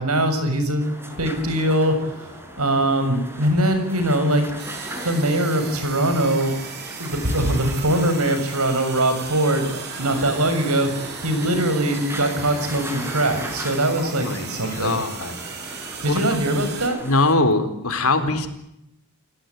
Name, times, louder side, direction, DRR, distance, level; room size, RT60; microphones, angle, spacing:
voice 1, 0.0-4.4 5.0-6.5 7.0-15.0 16.0-17.0, right 1 dB, 85° right, 9 dB, 6.7 m, -22 dB
sound 1, 0.8-17.4, equal, 10° right, 5.5 m, -37 dB
sound 2, 4.6-16.9, right 8 dB, 50° right, 3.3 m, -37 dB
voice 2, 14.0-15.3 16.1-16.2 17.0-18.5, left 2 dB, 75° left, 9 dB, 4.2 m, -22 dB
29.5 x 18.0 x 9.7 m, 0.82 s
head